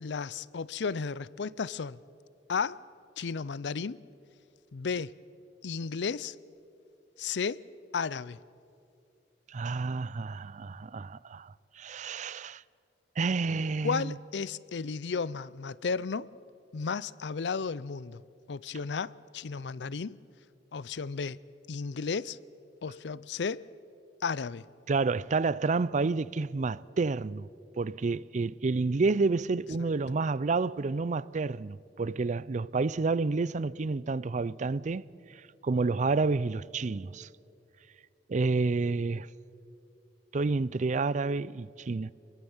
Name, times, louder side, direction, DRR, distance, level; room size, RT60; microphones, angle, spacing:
voice 1, 0.0-2.0 2.5-2.8 3.2-4.0 4.7-5.1 5.6-6.4 7.2-7.6 7.9-8.4 13.8-16.3 16.7-18.2 18.5-20.2 20.7-21.4 21.7-22.4 22.8-23.6 24.2-24.6, left 5 dB, 75° left, 0.5 m, -33 dB
voice 2, 9.5-12.6 13.2-14.1 24.9-27.5 27.8-35.0 35.6-37.3 38.3-39.3 40.3-42.1, right 3 dB, 45° right, 0.4 m, -29 dB
26.5 x 22.0 x 7.2 m
head